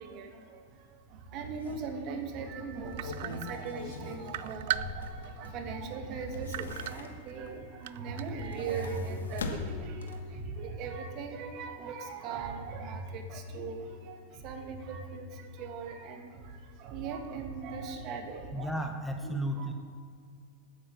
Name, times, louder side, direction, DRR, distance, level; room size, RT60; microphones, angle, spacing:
voice 1, 0.0-18.7 19.2-19.7, right 4 dB, 45° right, 5 dB, 1.8 m, -39 dB
sound 1, 1.1-1.2 1.6-1.7 2.7-5.7 6.1-7.5 8.3-10.4 10.8-10.9, left 4 dB, 85° left, 1.3 m, -43 dB
sound 2, 3.0-3.9 4.3-5.4 5.8-5.9 6.5-7.5 7.8-8.4, right 14 dB, 65° right, 0.4 m, -36 dB
voice 2, 18.5-19.7, right 1 dB, 5° left, 4 dB, 1.0 m, -33 dB
8.9 x 8.5 x 7.2 m, 2.1 s
hypercardioid pair, 105°, 0 cm